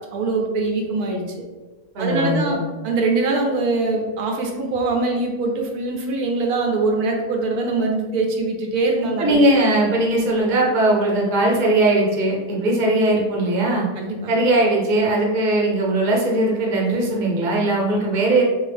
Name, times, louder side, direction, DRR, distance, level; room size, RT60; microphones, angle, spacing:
voice 1, 0.1-1.2 2.0-2.6 2.8-9.4 14.0-14.3, right 3 dB, 80° right, 1 dB, 1.1 m, -23 dB
voice 2, 1.9-2.6 9.2-13.9 14.3-18.4, right 1 dB, 40° right, -2 dB, 0.8 m, -19 dB
3.7 x 2.8 x 3.3 m, 1.3 s
omnidirectional pair, 1.6 m